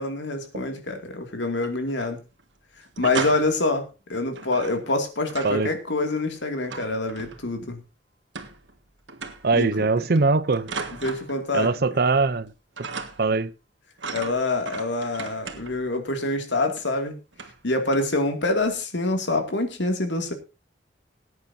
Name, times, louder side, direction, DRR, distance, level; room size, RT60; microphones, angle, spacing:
voice 1, 0.0-2.2 3.0-7.8 9.5-9.9 11.0-11.8 14.1-17.2 17.6-20.3, left 2 dB, 80° left, 2.5 m, -26 dB
sound 1, 1.4-2.1 2.4-2.5 2.8-3.7 4.3-5.7 5.9-7.7 8.4-8.8 9.1-9.6 10.2-11.8 12.1-12.5 12.8-13.4 14.0-15.9 16.8-16.9 17.3-17.6 17.9-18.2 18.6-18.8, right 5 dB, 85° right, 1.7 m, -37 dB
voice 2, 9.4-10.7 11.5-12.5 13.2-13.5, right 3 dB, 60° right, 0.7 m, -21 dB
20.0 x 9.6 x 2.8 m
head